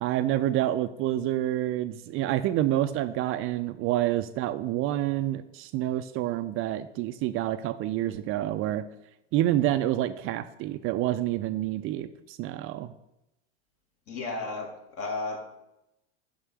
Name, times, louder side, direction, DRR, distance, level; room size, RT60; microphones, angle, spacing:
voice 1, 0.0-8.9 9.3-12.9, right 13 dB, 40° right, 11 dB, 0.5 m, -28 dB
voice 2, 14.1-15.4, left 3 dB, 45° left, 2 dB, 2.3 m, -33 dB
6.5 x 5.5 x 6.2 m, 0.88 s
hypercardioid pair, 105°, 33 cm